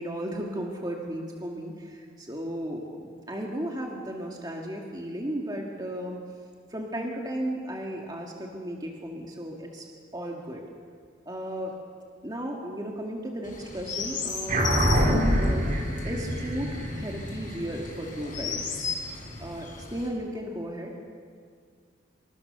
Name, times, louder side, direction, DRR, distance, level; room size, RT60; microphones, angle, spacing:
voice 1, 0.0-6.2 6.7-9.9 10.1-10.6 11.3-11.8 12.2-15.0 15.4-15.7 16.0-18.8 19.4-20.9, equal, 20° right, 0 dB, 2.3 m, -35 dB
Chirp tweet, 13.4-20.1, left 5 dB, 45° left, 5.8 m, -36 dB
sound 1, 14.5-19.2, equal, 45° right, 3.5 m, -26 dB
27.0 x 24.5 x 6.9 m, 2.1 s
head